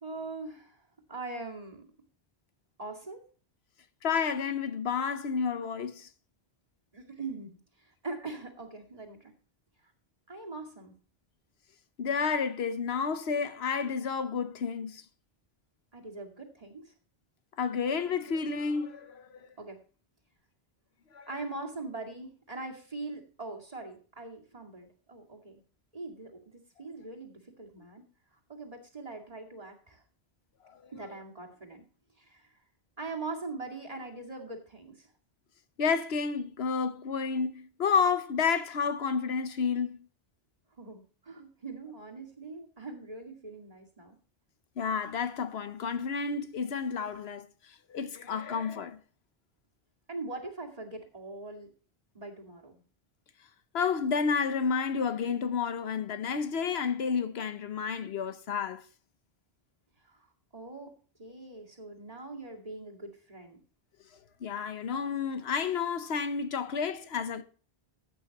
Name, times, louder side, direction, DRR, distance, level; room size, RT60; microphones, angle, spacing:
voice 1, 0.0-1.9 2.8-3.2 6.9-9.3 10.3-10.9 15.9-16.9 19.6-19.8 21.3-25.6 25.9-28.1 28.5-30.0 30.9-31.8 32.2-32.5 33.0-35.1 40.8-44.2 50.1-51.7 52.1-52.8 60.0-60.3 60.5-60.9 61.2-63.6, right 3 dB, 35° right, 2.3 m, -42 dB
voice 2, 4.0-6.1 12.0-15.0 17.6-19.5 21.1-21.3 30.7-30.9 35.8-40.1 44.8-49.0 53.7-58.8 64.4-67.4, left 6 dB, 80° left, 1.1 m, -30 dB
14.5 x 8.8 x 2.9 m
omnidirectional pair, 1.0 m